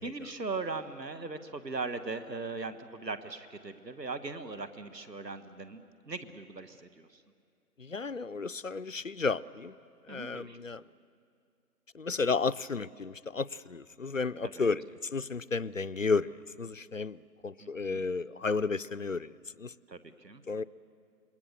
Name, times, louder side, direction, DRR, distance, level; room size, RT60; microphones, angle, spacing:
voice 1, 0.0-7.2 10.1-10.6 14.4-14.7 17.6-18.1 19.9-20.4, right 3 dB, 85° right, 11 dB, 1.7 m, -39 dB
voice 2, 7.8-9.7 10.1-10.8 11.9-14.8 15.1-16.3 16.6-19.3 19.6-19.7 20.5-20.6, left 4 dB, 55° left, 15 dB, 0.5 m, -32 dB
27.5 x 22.0 x 6.8 m, 2.4 s
figure-of-eight pair, 170°, 48 cm